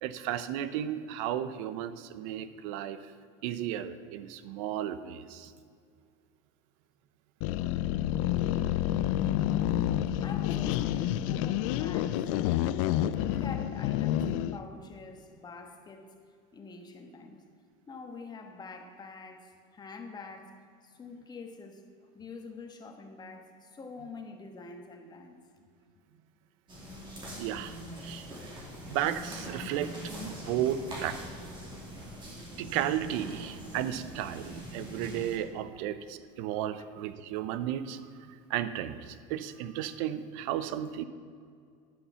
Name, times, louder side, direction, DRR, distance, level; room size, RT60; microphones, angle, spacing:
voice 1, 0.0-3.0 3.4-5.5 27.4-28.3 28.9-31.2 32.6-41.0, right 11 dB, 75° right, 13 dB, 0.6 m, -34 dB
sound 1, 7.4-14.6, left 12 dB, 80° left, 0.5 m, -29 dB
voice 2, 10.2-12.3 13.0-16.1 16.5-17.5 17.9-20.6 20.8-25.4, left 4 dB, 25° left, 5 dB, 1.3 m, -46 dB
sound 2, 26.7-35.4, equal, 30° right, 2.8 m, -43 dB
11.5 x 5.6 x 8.0 m, 2.2 s
supercardioid pair, 130°, 17 cm